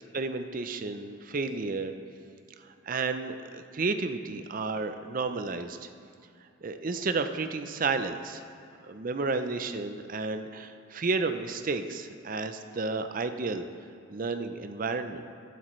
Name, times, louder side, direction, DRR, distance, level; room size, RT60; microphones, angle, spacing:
voice 1, 0.1-1.9 2.6-5.9 6.6-8.4 8.8-13.6 14.1-15.3, right 3 dB, 40° right, 8 dB, 0.5 m, -32 dB
14.0 x 10.0 x 3.2 m, 2.5 s
head